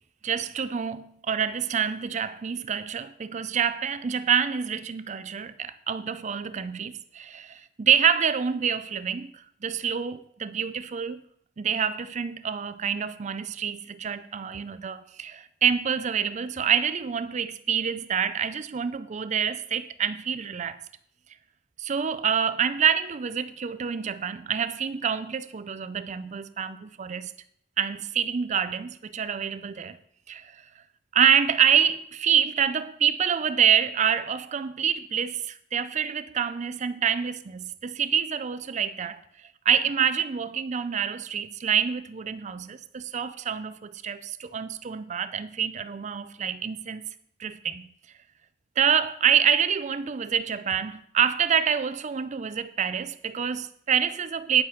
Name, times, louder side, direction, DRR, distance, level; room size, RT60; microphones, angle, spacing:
voice 1, 0.2-11.2 11.6-20.8 21.8-27.3 27.8-30.0 30.3-30.6 31.1-39.2 39.7-47.1 47.4-47.9 48.8-54.6, right 7 dB, 40° right, 0.4 m, -26 dB
10.0 x 7.5 x 5.7 m
head